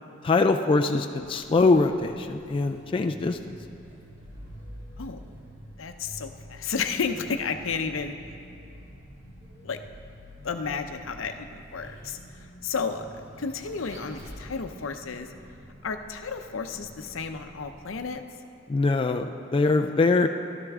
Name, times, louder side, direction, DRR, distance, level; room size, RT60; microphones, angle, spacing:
voice 1, 0.2-3.6 18.7-20.3, left 3 dB, 25° left, 5 dB, 0.3 m, -23 dB
Vehicle, 1.1-18.0, equal, 70° right, 2.2 m, -47 dB
voice 2, 5.8-8.1 9.6-9.8 10.4-12.2 12.6-13.1 13.4-15.3 15.8-18.2, left 5 dB, 75° left, 7 dB, 0.7 m, -32 dB
13.0 x 12.5 x 3.6 m, 2.7 s
head